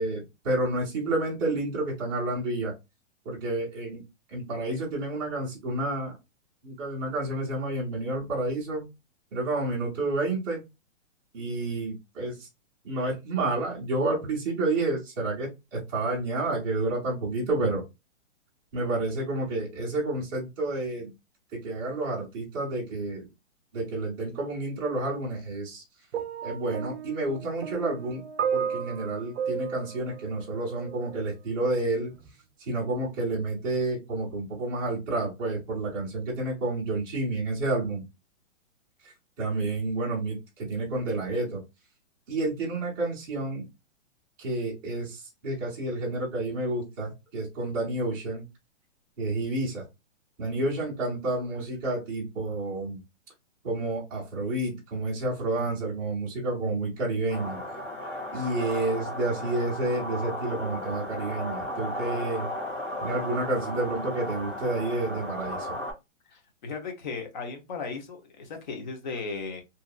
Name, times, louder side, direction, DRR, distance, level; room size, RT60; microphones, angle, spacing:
voice 1, 0.0-2.7 3.2-4.0 4.3-6.2 6.6-8.9 9.3-10.6 11.3-12.5 12.8-17.8 18.7-21.1 21.5-23.3 23.7-25.8 26.4-28.2 28.5-32.1 32.6-38.0 39.0-41.6 42.3-43.6 44.4-48.4 49.2-49.8 50.4-53.0 53.6-57.6 58.3-62.5 63.0-65.8, right 2 dB, 10° right, -6 dB, 0.7 m, -30 dB
sound 1, 26.1-31.2 32.1-32.3, right 7 dB, 60° right, 0.5 m, -34 dB
sound 2, 57.3-65.9, left 1 dB, 20° left, 1.5 m, -35 dB
voice 2, 66.3-69.6, left 4 dB, 35° left, 3 dB, 0.7 m, -36 dB
2.7 x 2.5 x 2.2 m, 0.23 s
hypercardioid pair, 170°, 38 cm